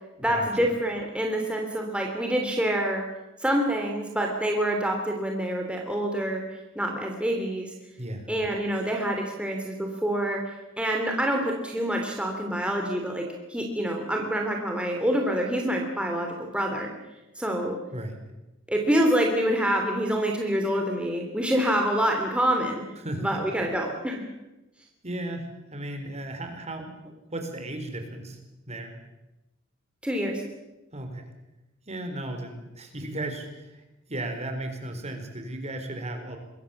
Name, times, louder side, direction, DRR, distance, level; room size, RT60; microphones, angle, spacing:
voice 1, 0.2-3.0 3.4-6.4 6.7-7.7 8.3-10.4 10.8-16.9 17.4-17.8 18.7-22.8 23.2-24.2 30.0-30.4, right 1 dB, 5° right, 1 dB, 3.0 m, -26 dB
voice 2, 8.0-8.3 17.9-18.2 23.0-23.4 25.0-28.4 28.7-28.9 30.9-31.3 31.9-36.4, right 1 dB, 35° right, 5 dB, 4.4 m, -35 dB
26.0 x 22.0 x 7.2 m, 0.99 s
head